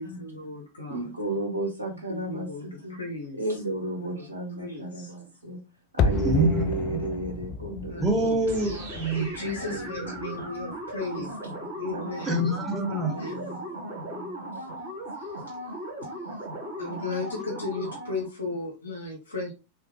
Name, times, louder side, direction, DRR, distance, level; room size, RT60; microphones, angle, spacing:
voice 1, 0.0-1.0 2.1-3.4 4.0-4.3 4.6-5.1 7.9-8.4 9.1-11.3 11.8-12.5 12.9-13.5 15.2-15.3 16.8-19.5, left 3 dB, 75° left, 0.8 m, -35 dB
voice 2, 0.9-3.0 3.3-5.6 5.9-8.2 9.6-10.5 11.1-11.5 11.9-12.1 12.4-12.5 13.0-14.6 17.8-17.9 18.2-18.3, right 2 dB, 80° right, 0.7 m, -34 dB
sound 1, 6.0-10.9 11.2-11.3, left 5 dB, 35° left, 0.3 m, -31 dB
voice 3, 6.2-6.7 8.0-9.3 12.2-13.2, right 2 dB, 10° right, 0.6 m, -25 dB
sound 2, 8.5-18.3, right 1 dB, 60° right, 1.4 m, -37 dB
3.2 x 2.4 x 2.8 m
figure-of-eight pair, 90°, 0 cm